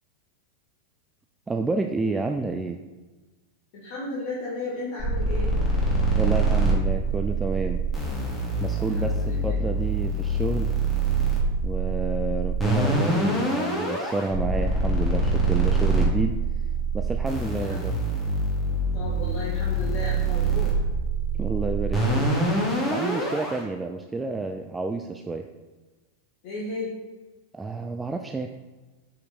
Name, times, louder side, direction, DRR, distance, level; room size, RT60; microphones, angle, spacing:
voice 1, 1.5-2.8 6.2-7.8 8.6-10.7 11.6-16.4 16.9-17.9 21.4-22.3 22.6-25.5 27.5-28.5, right 3 dB, 10° right, 5 dB, 0.5 m, -30 dB
voice 2, 3.7-5.6 8.7-9.6 12.2-12.6 17.6-18.2 18.9-20.7 26.4-27.0, left 2 dB, 45° left, -6 dB, 1.9 m, -35 dB
sound 1, 5.0-23.6, right 2 dB, 10° left, 2.6 m, -25 dB
7.9 x 5.8 x 4.3 m, 1.2 s
figure-of-eight pair, 90°, 0 cm